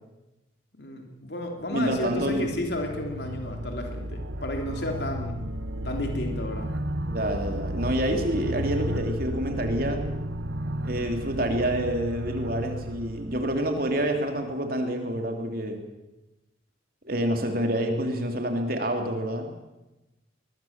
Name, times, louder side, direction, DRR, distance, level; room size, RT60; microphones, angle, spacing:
voice 1, 0.8-5.4 5.8-6.8, left 1 dB, 60° left, 3 dB, 3.3 m, -32 dB
sound 1, 1.6-14.4, right 1 dB, 75° right, 1.4 m, -33 dB
voice 2, 1.7-2.5 7.0-10.0 10.8-15.8 17.0-19.5, right 1 dB, 50° right, 4 dB, 3.2 m, -27 dB
22.0 x 21.5 x 7.5 m, 1.0 s
head